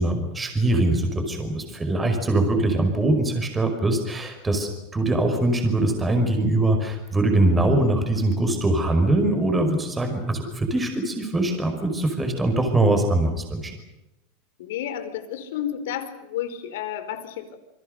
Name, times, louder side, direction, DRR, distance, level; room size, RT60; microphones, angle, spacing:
voice 1, 0.0-13.7, right 2 dB, 10° right, 5 dB, 5.3 m, -22 dB
voice 2, 14.6-17.6, left 10 dB, 80° left, 9 dB, 4.5 m, -31 dB
28.5 x 25.0 x 6.7 m, 0.94 s
supercardioid pair, 160°, 0 cm